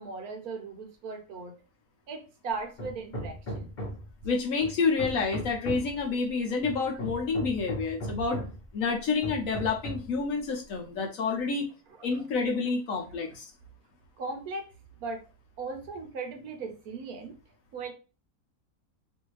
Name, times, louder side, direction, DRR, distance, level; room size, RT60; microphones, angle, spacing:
voice 1, 0.0-1.6 2.1-3.7 11.4-11.5 12.1-12.2 14.2-14.7 15.0-15.2 15.6-17.4 17.7-17.9, right 4 dB, 70° right, 4 dB, 1.2 m, -38 dB
Hammer, 2.8-4.2 4.6-6.0 6.6-8.7 9.2-10.2, equal, 35° left, 0.9 m, -37 dB
voice 2, 4.2-8.4 8.7-11.7 12.0-13.5, left 4 dB, 65° left, 3 dB, 1.0 m, -29 dB
3.1 x 2.7 x 3.0 m, 0.32 s
omnidirectional pair, 1.7 m